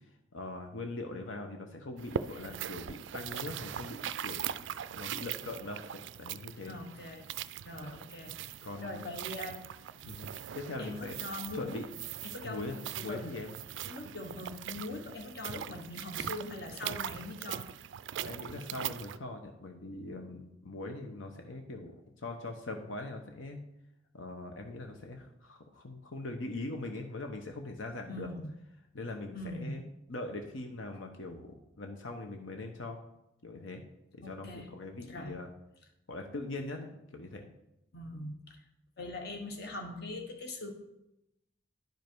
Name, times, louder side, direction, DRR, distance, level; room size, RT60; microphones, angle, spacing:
voice 1, 0.3-6.8 8.6-9.1 10.0-11.1 11.5-11.9 12.4-13.5 18.2-22.0 22.2-23.6 24.1-28.3 28.9-33.0 33.4-33.8 34.1-35.5 36.1-37.5, left 2 dB, 85° left, 4 dB, 0.9 m, -41 dB
sound 1, 2.0-19.2, right 10 dB, 70° right, 0.3 m, -41 dB
voice 2, 6.7-7.3 7.6-9.7 10.8-11.8 12.2-12.8 13.1-13.3 13.8-17.7 28.1-28.5 29.3-29.8 34.2-34.7 35.1-35.3 37.9-38.6 39.0-40.7, left 2 dB, 55° left, 4 dB, 1.2 m, -42 dB
10.5 x 5.3 x 4.5 m, 0.86 s
head